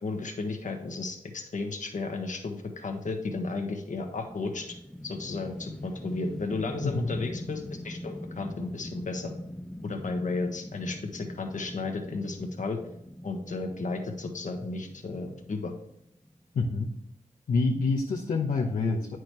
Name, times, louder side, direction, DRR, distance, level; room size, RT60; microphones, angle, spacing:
voice 1, 0.0-4.7 5.0-9.3 9.8-12.8 13.2-15.7, left 3 dB, 65° left, 4 dB, 1.5 m, -34 dB
sound 1, 4.2-16.4, left 1 dB, 5° left, 0.6 m, -42 dB
voice 2, 6.8-7.2 16.5-16.9 17.5-19.2, left 3 dB, 80° left, -3 dB, 1.0 m, -27 dB
8.6 x 6.3 x 3.2 m, 0.77 s
cardioid pair, 60°, 14 cm